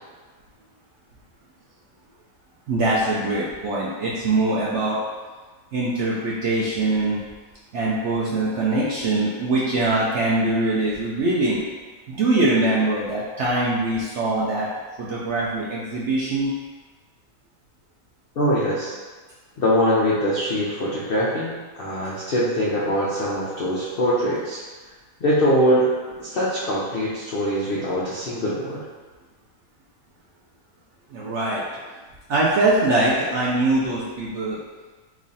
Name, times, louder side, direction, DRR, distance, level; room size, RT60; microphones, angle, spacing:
voice 1, 2.7-4.9 5.7-7.2 7.7-11.6 12.1-14.7 15.0-16.5 31.1-31.6 32.3-34.6, right 2 dB, 65° right, -6 dB, 0.7 m, -22 dB
voice 2, 18.4-18.9 19.6-24.6 25.2-25.9 26.2-28.8, equal, 75° left, -7 dB, 0.5 m, -22 dB
3.1 x 2.4 x 3.9 m, 1.3 s
omnidirectional pair, 1.7 m